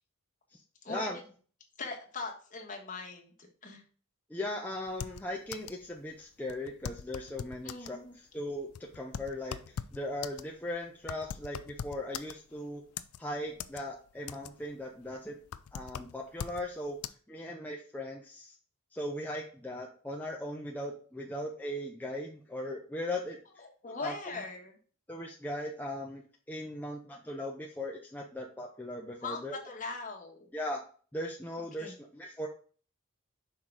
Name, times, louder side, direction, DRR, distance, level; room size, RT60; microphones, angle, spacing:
voice 1, 0.9-1.2 4.3-8.0 8.3-8.7 8.9-12.8 13.2-15.4 15.7-17.0 17.3-18.6 18.9-23.4 23.9-24.4 25.1-29.6 30.5-30.8 31.1-32.5, left 1 dB, 10° left, -1 dB, 0.6 m, -38 dB
voice 2, 1.8-3.3 3.6-3.8 7.6-8.2 23.6-24.7 29.2-30.5 31.8-31.9, left 3 dB, 35° left, 1 dB, 1.5 m, -40 dB
sound 1, 4.9-5.9 6.1-6.2 6.5-8.0 8.5-12.6 13.0-13.8 14.1-14.7 15.1-16.7 17.0-17.1, left 8 dB, 85° left, 0.4 m, -41 dB
5.7 x 3.9 x 4.6 m, 0.42 s
head